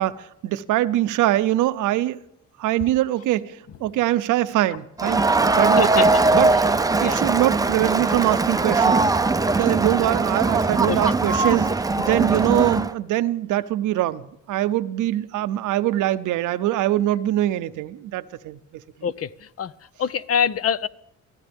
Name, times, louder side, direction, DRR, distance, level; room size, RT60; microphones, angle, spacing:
voice 1, 0.0-2.2 2.6-5.2 5.5-6.1 6.3-6.6 7.0-9.2 9.5-11.7 12.0-14.2 14.5-18.8, right 14 dB, 85° right, 0.7 m, -23 dB
Crowd, 5.0-12.9, right 3 dB, 10° right, 0.5 m, -20 dB
voice 2, 20.0-20.9, left 7 dB, 50° left, 0.7 m, -24 dB
23.5 x 15.0 x 3.5 m
cardioid pair, 90°, 30 cm